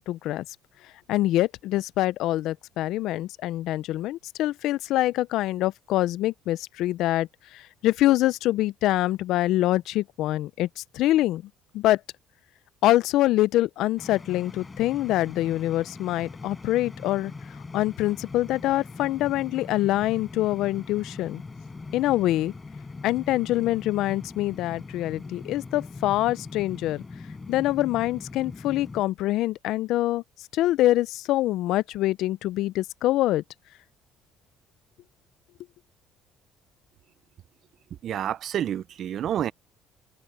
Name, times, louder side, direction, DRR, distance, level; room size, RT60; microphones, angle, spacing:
voice 1, 0.1-0.4 1.1-11.4 11.7-12.0 12.8-17.3 17.7-21.4 21.9-22.5 23.0-27.0 27.5-30.2 30.5-33.4, left 15 dB, 75° left, 0.4 m, -25 dB
sound 1, 14.0-29.0, left 3 dB, 20° left, 5.3 m, -41 dB
voice 2, 38.0-39.5, right 10 dB, 55° right, 0.5 m, -28 dB
open air
cardioid pair, 115°, 0 cm